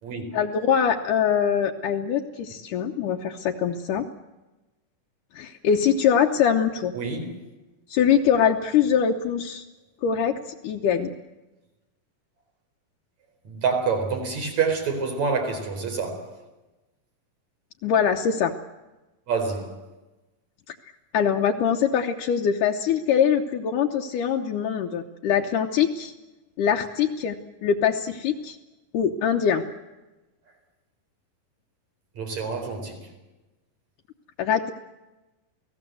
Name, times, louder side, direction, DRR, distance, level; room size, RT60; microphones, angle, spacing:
voice 1, 0.3-4.1 5.3-6.9 7.9-9.6 10.0-10.4 10.6-11.1 17.8-18.5 21.1-26.1 26.6-28.6 28.9-29.6 34.4-34.7, left 8 dB, 75° left, 2.4 m, -23 dB
voice 2, 6.9-7.3 13.5-16.3 19.3-19.7 32.2-33.0, right 5 dB, 55° right, 5.4 m, -27 dB
28.5 x 18.5 x 7.8 m
omnidirectional pair, 3.9 m